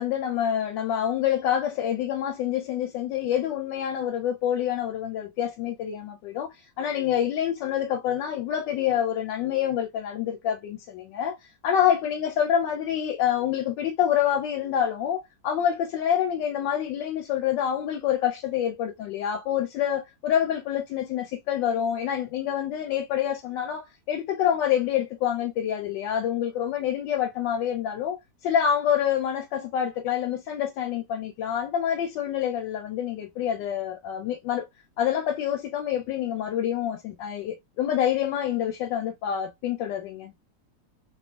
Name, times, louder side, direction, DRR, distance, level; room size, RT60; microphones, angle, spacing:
voice 1, 0.0-11.4 11.6-28.2 28.4-34.7 35.0-40.3, left 9 dB, 90° left, 1.3 m, -27 dB
2.9 x 2.3 x 2.4 m
omnidirectional pair, 1.9 m